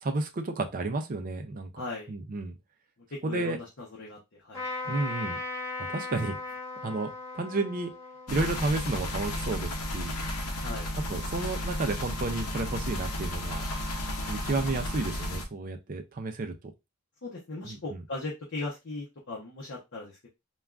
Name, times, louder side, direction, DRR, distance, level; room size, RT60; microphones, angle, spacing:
voice 1, 0.0-1.8 2.1-2.6 3.2-3.6 4.8-5.4 5.9-6.4 6.8-7.9 8.3-10.1 10.9-13.6 14.3-16.5 17.6-18.0, right 3 dB, 40° right, 5 dB, 0.4 m, -32 dB
voice 2, 1.8-2.1 3.3-4.2 4.4-4.7 10.6-10.9 17.2-20.3, left 3 dB, 55° left, -3 dB, 0.7 m, -38 dB
Trumpet, 4.5-10.1, left 3 dB, 10° left, 1.5 m, -38 dB
sound 1, 8.3-15.4, left 1 dB, 90° left, 0.7 m, -33 dB
3.4 x 2.3 x 2.3 m, 0.23 s
head